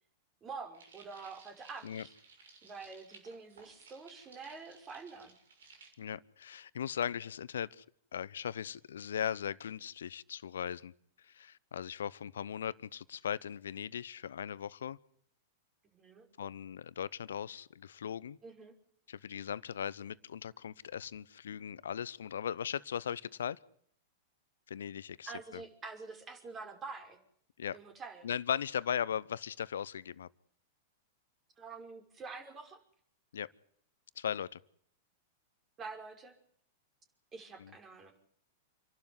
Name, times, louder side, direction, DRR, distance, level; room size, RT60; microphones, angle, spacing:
voice 1, 0.4-2.1 2.6-5.4 15.8-16.3 18.4-18.7 25.3-27.2 27.7-28.3 31.6-32.8 35.8-36.4 37.3-38.1, right 4 dB, 25° right, 6 dB, 5.6 m, -47 dB
sound 1, 0.7-5.9, right 4 dB, 75° right, 6.3 m, -58 dB
voice 2, 6.0-7.8 8.1-10.9 11.3-15.0 16.4-18.4 19.1-23.6 24.7-25.6 27.6-27.8 28.2-30.3 33.3-33.5 34.2-34.6 37.6-37.7, left 8 dB, 75° left, 20 dB, 0.8 m, -38 dB
28.0 x 12.0 x 9.8 m, 0.66 s
hypercardioid pair, 100°, 0 cm